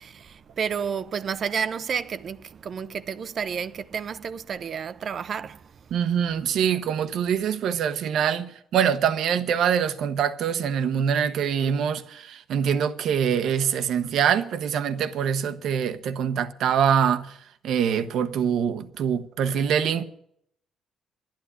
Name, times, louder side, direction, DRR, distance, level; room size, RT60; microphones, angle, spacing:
voice 1, 0.0-5.9, right 7 dB, 55° right, 0.6 m, -31 dB
voice 2, 5.9-17.3 17.6-20.0, right 8 dB, 75° right, 0.9 m, -24 dB
11.5 x 10.5 x 8.1 m
cardioid pair, 90°, 0 cm